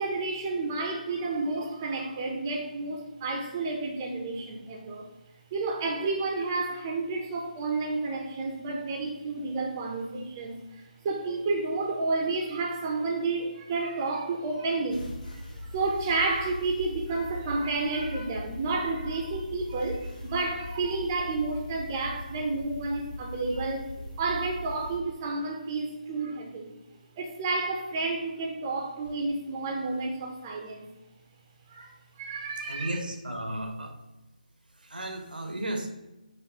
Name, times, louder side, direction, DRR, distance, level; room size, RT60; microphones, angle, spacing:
voice 1, 0.0-5.1 5.5-23.9 24.2-26.7 27.2-30.9 31.7-33.0, right 3 dB, 25° right, 2 dB, 0.4 m, -31 dB
sound 1, 14.9-25.0, left 1 dB, 75° left, 0.9 m, -40 dB
voice 2, 32.7-34.0 34.8-35.9, right 1 dB, 90° right, 5 dB, 0.7 m, -34 dB
4.2 x 2.5 x 2.9 m, 1.0 s
figure-of-eight pair, 155°, 5 cm